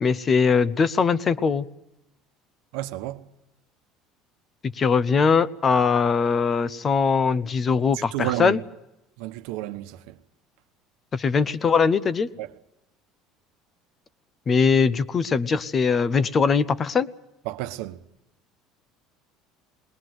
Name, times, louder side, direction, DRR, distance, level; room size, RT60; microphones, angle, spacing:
voice 1, 0.0-1.7 4.8-8.6 11.1-12.3 14.5-17.1, left 5 dB, 25° left, 0.8 m, -21 dB
voice 2, 2.7-3.3 7.9-8.6 9.2-10.2 12.4-12.5 17.4-18.0, right 16 dB, 80° right, 1.1 m, -31 dB
20.5 x 19.5 x 7.9 m
cardioid pair, 140°, 0 cm